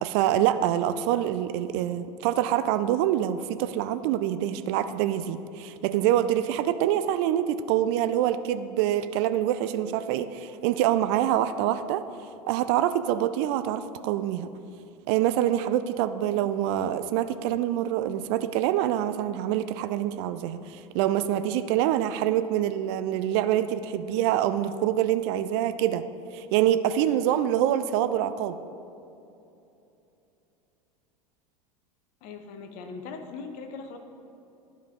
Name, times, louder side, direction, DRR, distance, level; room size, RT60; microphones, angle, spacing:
voice 1, 0.0-12.0 12.5-14.5 15.1-26.0 26.3-28.6, right 11 dB, 45° right, 12 dB, 0.4 m, -25 dB
voice 2, 32.2-34.0, left 4 dB, 45° left, 6 dB, 0.9 m, -40 dB
11.0 x 5.2 x 3.8 m, 2.8 s
figure-of-eight pair, 85°, 19 cm